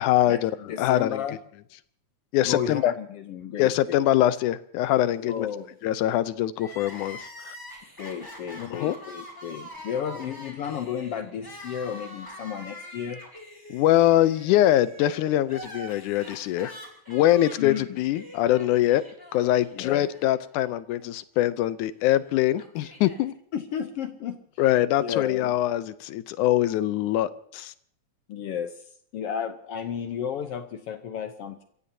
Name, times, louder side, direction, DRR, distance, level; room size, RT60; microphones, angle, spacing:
voice 1, 0.0-1.2 2.3-2.9 3.6-5.5 5.8-7.6 8.6-9.0 13.7-16.7 17.1-19.0 19.3-23.3 24.6-27.7, left 13 dB, 90° left, 15 dB, 2.2 m, -23 dB
voice 2, 0.7-1.4 2.5-4.0 5.2-5.7 8.0-13.2 17.6-18.0 19.7-20.1 23.5-24.4 25.0-25.6 28.3-28.8 29.1-31.6, left 8 dB, 70° left, 8 dB, 1.5 m, -33 dB
Crying sobbing, 6.5-20.7 21.0-21.1 22.1-23.2, equal, 5° left, 3.4 m, -44 dB
29.0 x 15.5 x 2.8 m, 0.66 s
omnidirectional pair, 3.4 m